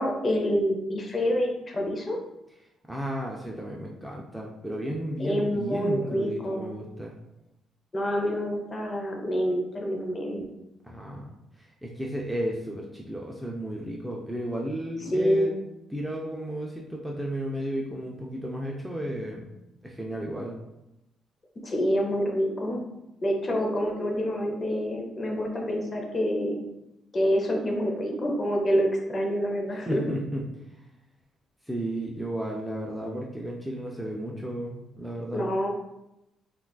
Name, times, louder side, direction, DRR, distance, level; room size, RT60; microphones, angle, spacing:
voice 1, 0.0-2.2 5.2-6.7 7.9-10.5 15.1-15.6 21.6-22.8 23.2-26.7 27.1-30.1 35.3-35.7, equal, 35° left, 1 dB, 0.6 m, -27 dB
voice 2, 2.9-7.1 10.8-15.5 15.9-19.5 19.8-20.6 29.9-30.4 31.7-35.5, right 1 dB, 5° right, -2 dB, 0.4 m, -33 dB
3.6 x 2.3 x 2.3 m, 0.90 s
cardioid pair, 90°, 0 cm